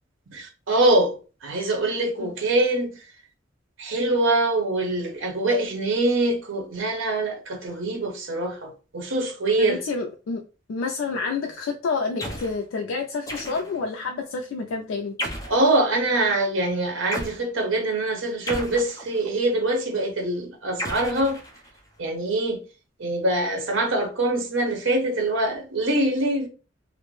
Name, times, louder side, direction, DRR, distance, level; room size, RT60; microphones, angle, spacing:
voice 1, 0.3-1.1 1.4-2.9 3.8-9.8 15.5-21.4 22.0-22.6 23.0-26.5, right 2 dB, 90° right, 0.7 m, -24 dB
voice 2, 9.6-10.4 10.7-15.1, left 4 dB, 85° left, 0.3 m, -29 dB
sound 1, 12.2-12.6 13.3-13.9 15.2-15.7 17.1-17.4 18.5-19.3 20.8-21.9, equal, 15° left, 0.5 m, -33 dB
2.5 x 2.0 x 3.0 m
head